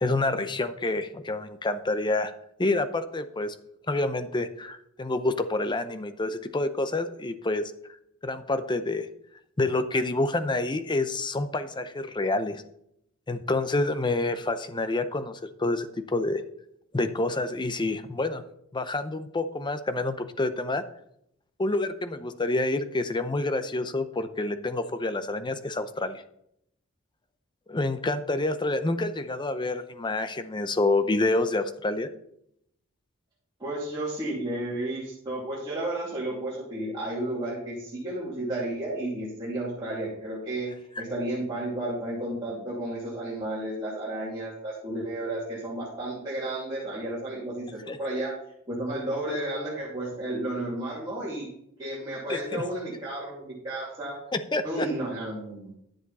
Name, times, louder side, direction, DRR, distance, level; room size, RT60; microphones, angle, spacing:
voice 1, 0.0-2.3 2.6-3.5 3.9-7.7 8.2-9.1 9.6-12.6 13.3-16.4 16.9-18.4 18.7-20.8 21.6-26.2 27.7-32.1 41.0-41.1 47.9-48.0 52.3-52.7 54.3-54.9, left 2 dB, 20° left, 10 dB, 0.6 m, -28 dB
voice 2, 33.6-40.7 41.0-48.3 48.7-51.5 51.8-54.2 54.6-55.7, right 1 dB, 20° right, -8 dB, 2.7 m, -32 dB
10.5 x 7.2 x 4.1 m, 0.74 s
head